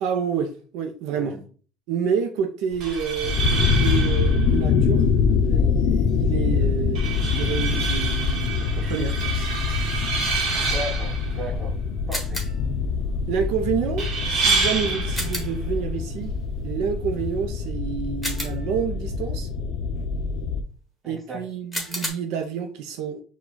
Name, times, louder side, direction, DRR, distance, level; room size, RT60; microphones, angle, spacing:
voice 1, 0.0-1.4 1.9-5.0 5.5-9.5 13.3-16.3 16.6-19.5 21.1-23.2, right 7 dB, 80° right, 0.5 m, -29 dB
voice 2, 1.1-1.4 10.6-11.7 12.1-12.4 21.0-21.4, equal, 20° right, 1.6 m, -35 dB
sound 1, 2.7-17.7, right 4 dB, 55° right, 1.2 m, -29 dB
sound 2, 3.2-20.6, left 5 dB, 65° left, 0.4 m, -24 dB
sound 3, 12.1-12.7 15.1-15.7 18.2-18.9 21.7-22.1, equal, 5° left, 1.2 m, -32 dB
4.8 x 2.3 x 3.8 m
cardioid pair, 140°, 0 cm